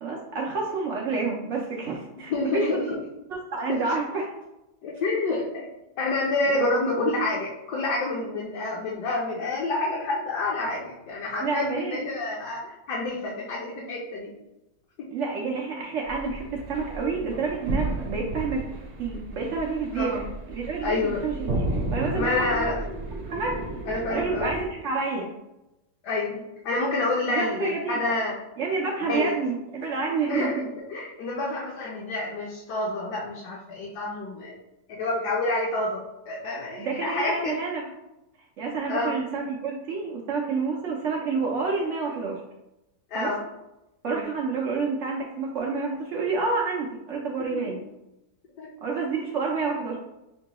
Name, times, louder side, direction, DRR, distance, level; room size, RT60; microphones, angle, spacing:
voice 1, 0.0-2.7 3.5-4.3 6.5-6.7 11.4-12.0 15.1-18.6 19.0-21.5 21.9-22.7 23.3-23.6 24.1-25.3 27.3-28.0 28.6-30.5 36.8-37.9 38.6-42.4 43.1-43.3 44.0-47.8 48.8-50.0, right 4 dB, 80° right, -2 dB, 0.6 m, -29 dB
voice 2, 2.3-3.0 3.7-3.8 4.8-5.7 6.0-14.3 15.0-15.1 19.9-20.2 20.8-21.2 22.1-22.8 23.9-24.5 26.0-28.3 29.1-29.3 30.2-30.6 30.9-34.6 34.9-37.5 38.9-39.2 43.1-43.4 44.0-44.2 47.5-47.6 48.6-48.7, left 2 dB, 65° left, -4 dB, 1.3 m, -28 dB
sound 1, 16.1-24.7, right 2 dB, 50° right, 0.9 m, -33 dB
6.6 x 2.2 x 2.9 m, 0.92 s
omnidirectional pair, 2.0 m